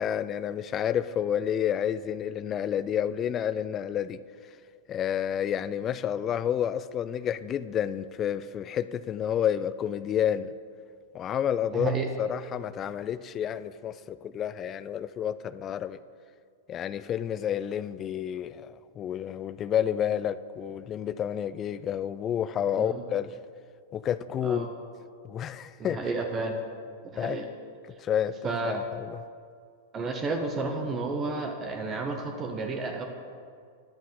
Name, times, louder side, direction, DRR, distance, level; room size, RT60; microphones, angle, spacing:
voice 1, 0.0-4.2 4.9-10.5 11.1-16.0 16.7-23.4 23.9-24.7 25.2-26.0 27.2-27.4 28.0-29.2, left 9 dB, 30° left, 15 dB, 0.3 m, -30 dB
voice 2, 11.7-12.1 22.8-23.0 24.4-24.7 25.8-26.6 27.1-27.5 28.4-28.8 29.9-33.1, right 3 dB, 25° right, 3 dB, 0.8 m, -31 dB
10.5 x 7.2 x 3.8 m, 2.2 s
figure-of-eight pair, 95°, 0 cm